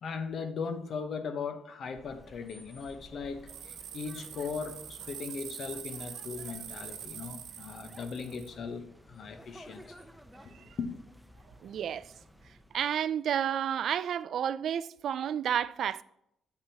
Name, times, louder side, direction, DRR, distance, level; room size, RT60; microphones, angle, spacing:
voice 1, 0.0-10.1 10.8-11.0, left 5 dB, 60° left, 1.0 m, -38 dB
sound 1, 1.9-13.0, equal, ahead, 0.7 m, -54 dB
sound 2, 3.5-8.5, right 9 dB, 90° right, 1.2 m, -44 dB
voice 2, 11.6-12.1 12.7-16.0, right 9 dB, 65° right, 0.3 m, -31 dB
8.7 x 8.2 x 2.9 m
cardioid pair, 90°, 0 cm